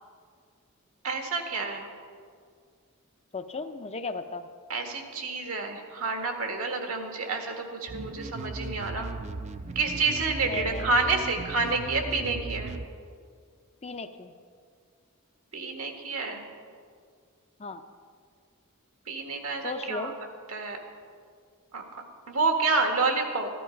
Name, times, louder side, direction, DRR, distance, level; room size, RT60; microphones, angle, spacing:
voice 1, 1.0-1.9 4.7-9.1 9.7-12.7 15.5-16.5 19.1-20.1 20.5-20.8 21.7-23.5, right 3 dB, 75° right, 4 dB, 1.7 m, -29 dB
voice 2, 3.3-4.5 10.4-10.9 13.8-14.3 17.6-17.8 19.6-20.1, left 3 dB, 30° left, 8 dB, 0.5 m, -35 dB
sound 1, 7.9-12.9, right 3 dB, 30° right, 0.4 m, -37 dB
14.5 x 12.0 x 5.1 m, 2.1 s
head